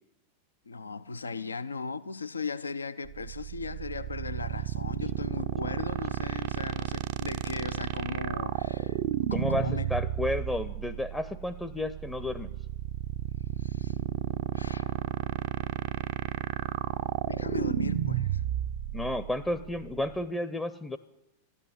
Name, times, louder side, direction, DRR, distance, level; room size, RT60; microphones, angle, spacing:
voice 1, 0.7-9.0 9.3-9.9 13.6-14.0 14.5-14.9 17.3-18.4, left 4 dB, 75° left, 0.4 m, -37 dB
sound 1, 3.1-20.3, right 13 dB, 50° right, 0.5 m, -32 dB
voice 2, 9.3-12.5 18.9-21.0, left 1 dB, 10° left, 0.6 m, -32 dB
13.5 x 9.9 x 9.5 m
figure-of-eight pair, 90°, 0 cm